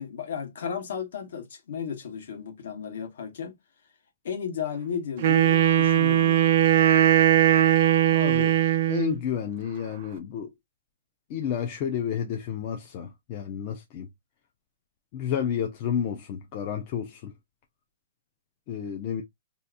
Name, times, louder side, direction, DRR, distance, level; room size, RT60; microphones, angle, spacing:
voice 1, 0.0-3.5 4.2-6.6, left 7 dB, 55° left, 1.1 m, -34 dB
Wind instrument woodwind instrument, 5.2-9.2, right 11 dB, 35° right, 0.5 m, -20 dB
voice 2, 8.1-8.5 8.9-10.5 11.3-14.1 15.1-17.3 18.7-19.2, left 8 dB, 25° left, 0.4 m, -31 dB
2.7 x 2.4 x 3.5 m
hypercardioid pair, 180°, 0 cm